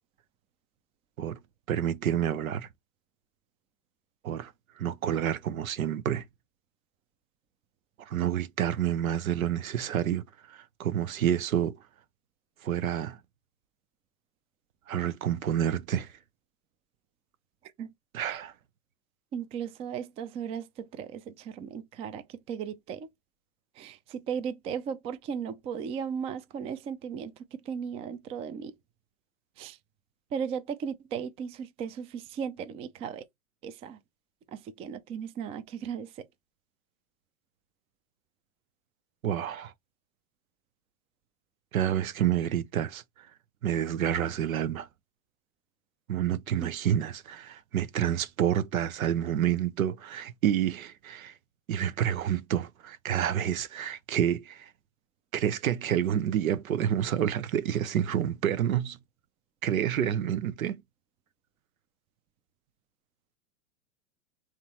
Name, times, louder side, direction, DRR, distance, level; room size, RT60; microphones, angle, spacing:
voice 1, 1.7-2.7 4.2-4.5 4.8-6.2 8.0-11.7 12.6-13.2 14.9-16.1 18.1-18.5 39.2-39.7 41.7-43.3 43.6-44.9 46.1-51.3 51.7-54.7 55.3-59.0 59.6-60.8, right 10 dB, 90° right, 0.7 m, -28 dB
voice 2, 19.3-23.1 23.8-28.7 29.6-29.8 30.3-33.2 33.6-34.0 34.5-36.3 46.6-46.7, right 7 dB, 15° right, 0.3 m, -36 dB
3.6 x 3.0 x 4.2 m
hypercardioid pair, 120°, 40 cm